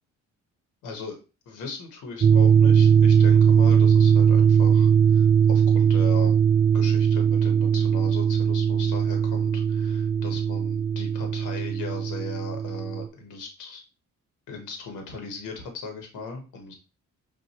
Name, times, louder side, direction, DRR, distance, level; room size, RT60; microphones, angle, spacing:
voice 1, 0.8-1.2 1.5-6.3 6.7-13.8 14.5-16.7, left 4 dB, 90° left, 4 dB, 1.2 m, -38 dB
sound 1, 2.2-13.1, right 7 dB, 35° right, 0.4 m, -19 dB
5.5 x 2.7 x 2.9 m, 0.32 s
cardioid pair, 90°, 30 cm